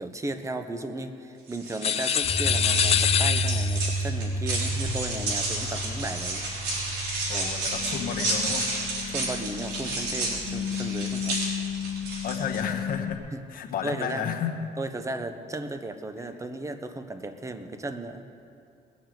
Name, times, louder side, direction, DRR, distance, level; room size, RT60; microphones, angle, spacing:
voice 1, 0.0-6.5 7.3-7.5 9.1-11.4 13.3-13.4 13.8-14.3 14.8-18.2, right 2 dB, 20° right, 8 dB, 1.1 m, -35 dB
sound 1, 1.5-12.6, right 2 dB, 75° right, 4.3 m, -32 dB
sound 2, 1.8-4.0, left 9 dB, 35° left, 0.4 m, -25 dB
sound 3, 2.2-13.1, left 1 dB, 75° left, 1.7 m, -32 dB
voice 2, 7.3-8.6 12.2-13.2 13.5-14.6, left 7 dB, 60° left, 3 dB, 1.5 m, -32 dB
20.5 x 7.1 x 7.8 m, 2.5 s
cardioid pair, 110°, 17 cm